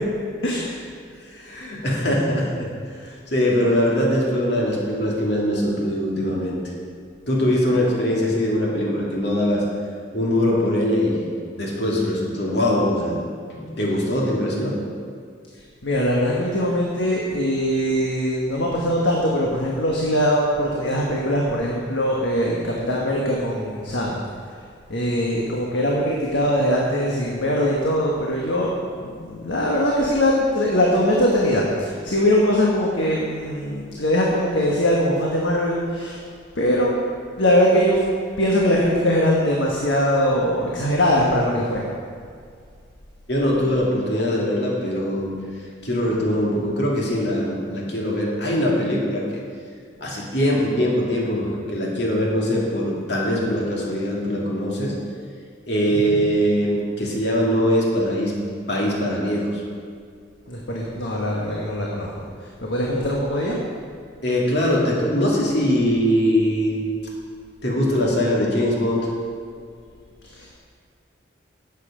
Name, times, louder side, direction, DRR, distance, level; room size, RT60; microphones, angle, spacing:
voice 1, 0.4-0.8 15.8-24.2 24.9-36.2 36.5-36.9 37.4-38.0 38.4-41.8 55.9-56.2 60.5-63.6 70.3-70.5, equal, 80° left, -3 dB, 1.4 m, -21 dB
voice 2, 1.3-2.7 3.0-6.6 7.3-9.6 10.1-11.3 11.6-13.2 13.5-14.8 43.3-45.3 45.8-49.4 50.0-54.9 55.7-58.3 58.7-59.6 64.2-66.8 67.6-69.1, equal, 60° left, -3 dB, 2.4 m, -22 dB
12.0 x 8.4 x 5.0 m, 2.1 s
head